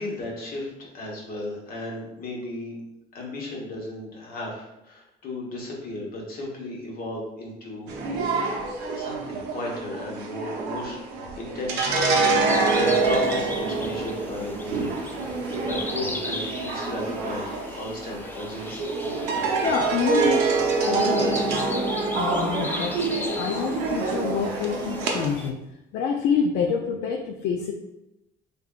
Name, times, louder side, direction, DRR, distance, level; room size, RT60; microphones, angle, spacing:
voice 1, 0.0-2.8 3.1-7.9 8.2-8.3 8.9-11.0 11.4-15.1 15.6-18.9, left 1 dB, 60° left, -2 dB, 1.2 m, -35 dB
sound 1, 7.9-25.3, right 3 dB, 85° right, 0.7 m, -26 dB
sound 2, 12.4-25.5, left 2 dB, 10° left, 0.3 m, -37 dB
voice 2, 19.6-20.5 20.9-21.7 22.1-25.6 25.9-27.7, left 6 dB, 80° left, 3 dB, 0.4 m, -27 dB
3.6 x 3.3 x 2.3 m, 0.89 s
cardioid pair, 110°, 17 cm